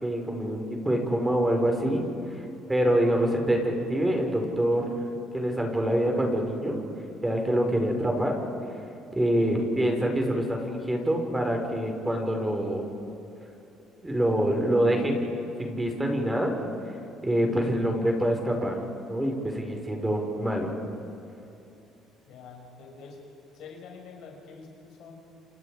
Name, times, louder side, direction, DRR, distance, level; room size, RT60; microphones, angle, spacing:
voice 1, 0.0-2.0 2.3-2.4 2.7-4.9 5.3-6.8 7.2-8.4 9.1-12.8 14.0-15.2 15.6-16.5 17.2-18.7 19.1-20.7, right 1 dB, 10° right, 2 dB, 5.0 m, -25 dB
voice 2, 22.3-23.2 23.5-25.2, left 5 dB, 70° left, 0 dB, 5.9 m, -46 dB
28.5 x 28.5 x 5.0 m, 2.9 s
supercardioid pair, 80°, 0 cm